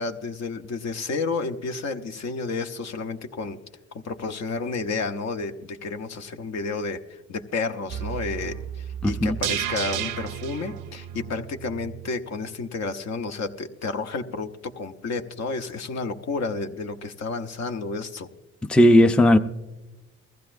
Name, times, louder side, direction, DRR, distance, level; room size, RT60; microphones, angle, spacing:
voice 1, 0.0-3.6 3.9-18.3, left 4 dB, 60° left, 1.0 m, -31 dB
sound 1, 7.9-12.1 12.4-12.5, right 10 dB, 80° right, 0.6 m, -33 dB
voice 2, 9.0-9.4 18.7-19.4, left 1 dB, 5° left, 0.5 m, -16 dB
21.5 x 15.0 x 2.6 m
cardioid pair, 90°, 30 cm